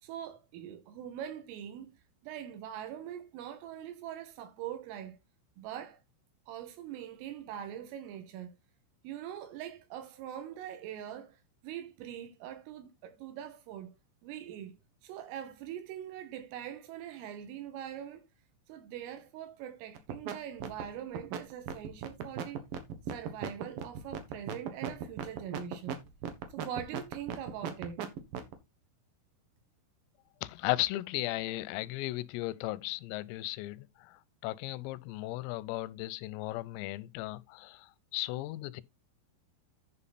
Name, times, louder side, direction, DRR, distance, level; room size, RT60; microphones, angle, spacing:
voice 1, 0.0-1.9 2.2-5.2 5.6-6.0 6.5-8.5 9.0-11.4 11.6-13.9 14.2-18.3 18.7-22.6 23.1-26.0 26.5-28.1, right 10 dB, 80° right, 4.1 m, -43 dB
sound 1, 19.9-20.3 20.6-28.5, right 9 dB, 65° right, 2.4 m, -36 dB
voice 2, 30.4-38.8, left 18 dB, 90° left, 3.3 m, -36 dB
11.0 x 5.6 x 4.2 m
omnidirectional pair, 5.8 m